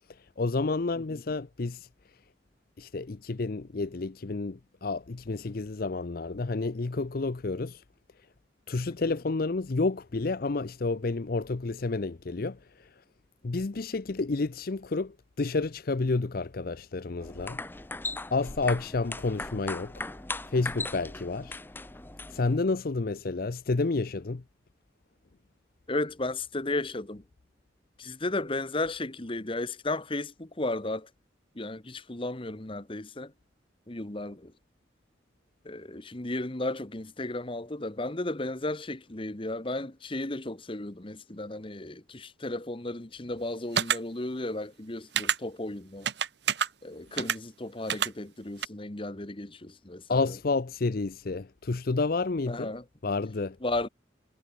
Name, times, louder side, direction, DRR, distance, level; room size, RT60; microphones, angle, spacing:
voice 1, 0.4-1.9 2.8-7.8 8.7-12.9 13.4-17.6 18.3-20.1 20.5-21.6 22.3-24.4 50.1-52.7 53.0-53.6, left 3 dB, 50° left, 0.6 m, -30 dB
sound 1, 17.2-22.6, left 2 dB, 10° left, 0.7 m, -38 dB
voice 2, 25.9-27.2 28.0-31.1 31.5-33.3 33.9-34.5 35.6-46.1 46.8-50.2 52.5-52.8 53.6-53.9, left 2 dB, 30° left, 1.3 m, -34 dB
sound 2, 43.8-44.0 45.2-45.4 46.1-46.7 47.2-47.4 47.9-48.1 48.6-48.7, right 8 dB, 60° right, 1.2 m, -26 dB
head